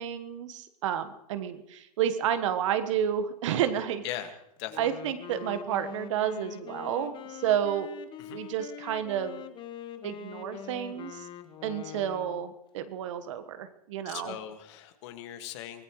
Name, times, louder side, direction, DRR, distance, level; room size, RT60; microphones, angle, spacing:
voice 1, 0.0-4.0 4.8-7.9 8.3-9.4 10.0-11.3 11.6-14.3, right 9 dB, 55° right, 10 dB, 1.4 m, -30 dB
voice 2, 4.6-4.9 8.2-8.4 14.1-15.8, left 12 dB, 50° left, 7 dB, 1.9 m, -39 dB
Wind instrument woodwind instrument, 4.6-12.5, left 9 dB, 25° left, 1.2 m, -43 dB
24.5 x 18.5 x 3.2 m, 0.79 s
hypercardioid pair, 110°, 19 cm